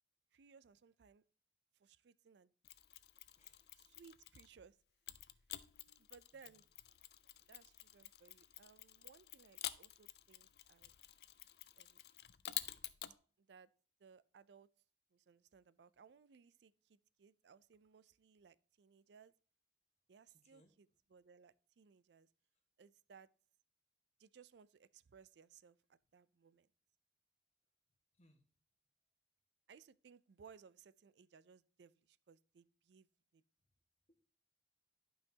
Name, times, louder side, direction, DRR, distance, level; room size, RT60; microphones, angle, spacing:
voice 1, 0.3-1.2 1.7-2.5 3.8-4.8 5.3-5.4 6.0-6.6 7.5-10.9 11.8-12.0 13.4-13.7 14.0-14.7 15.1-19.3 20.1-22.3 22.8-23.3 24.2-26.7 29.7-33.1 33.3-33.4, right 6 dB, 70° right, 0.4 m, -63 dB
Mechanisms, 2.6-4.6 5.1-13.2, left 13 dB, 60° left, 0.5 m, -50 dB
voice 2, 3.0-3.9 6.3-6.6 20.3-20.7 28.1-28.4 34.1-34.2, left 1 dB, 35° left, 1.6 m, -73 dB
11.5 x 5.6 x 2.8 m
head